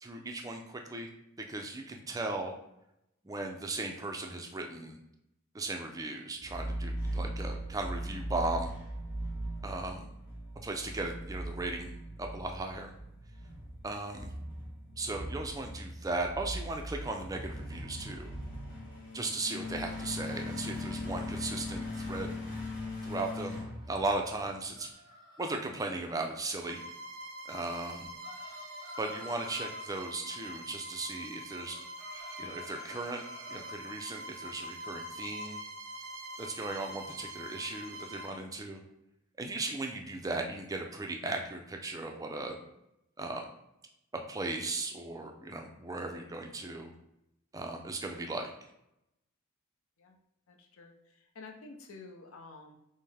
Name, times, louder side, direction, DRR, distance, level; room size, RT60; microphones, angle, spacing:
voice 1, 0.0-1.1 1.4-2.5 3.2-5.0 5.5-8.7 9.6-10.1 10.6-12.9 13.8-14.3 15.0-18.3 19.1-22.4 23.0-24.9 25.4-26.8 27.5-28.1 29.0-31.8 32.4-35.6 36.4-38.8 39.4-42.6 43.2-43.4 44.1-46.9 47.5-48.5, right 2 dB, 15° right, 3 dB, 0.4 m, -37 dB
sound 1, 6.4-24.5, equal, 40° left, 1.1 m, -39 dB
sound 2, 23.8-25.8 27.8-29.9 31.6-33.8, left 1 dB, 20° left, 0.7 m, -52 dB
Bowed string instrument, 26.6-38.4, equal, 75° right, 0.5 m, -44 dB
voice 2, 50.5-52.8, left 3 dB, 70° left, 2 dB, 0.6 m, -50 dB
5.3 x 2.1 x 3.4 m, 0.85 s
head